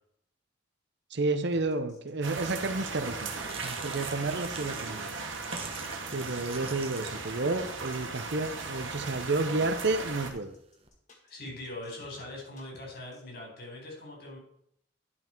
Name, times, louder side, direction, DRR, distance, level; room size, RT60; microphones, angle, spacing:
voice 1, 1.1-3.3 3.6-5.1 6.1-10.5, right 3 dB, 60° right, 9 dB, 0.8 m, -31 dB
sound 1, 1.5-13.2, left 1 dB, 40° left, 1.9 m, -55 dB
sound 2, 2.2-10.3, right 4 dB, 80° right, 1.7 m, -37 dB
sound 3, 3.1-10.9, right 5 dB, 30° right, 1.2 m, -47 dB
voice 2, 11.2-14.4, left 2 dB, 55° left, -1 dB, 4.5 m, -42 dB
11.0 x 5.9 x 4.6 m, 0.71 s
head